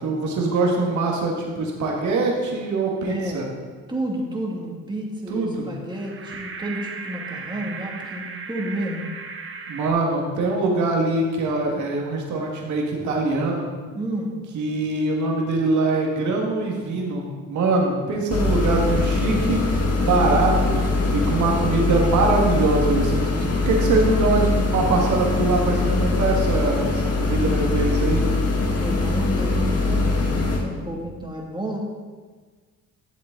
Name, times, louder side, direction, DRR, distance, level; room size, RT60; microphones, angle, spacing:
voice 1, 0.0-3.5 5.3-5.7 9.7-13.7 14.5-19.6 20.0-20.8 21.1-28.2, right 3 dB, 75° right, -1 dB, 1.9 m, -23 dB
voice 2, 3.0-3.5 3.9-9.0 13.9-14.3 28.6-31.8, right 1 dB, 15° right, -2 dB, 2.3 m, -31 dB
sound 1, 5.9-9.9, right 4 dB, 45° right, 1.1 m, -36 dB
sound 2, 18.3-30.6, left 3 dB, 55° left, 1.8 m, -22 dB
11.5 x 7.7 x 3.9 m, 1.5 s
cardioid pair, 90°, 30 cm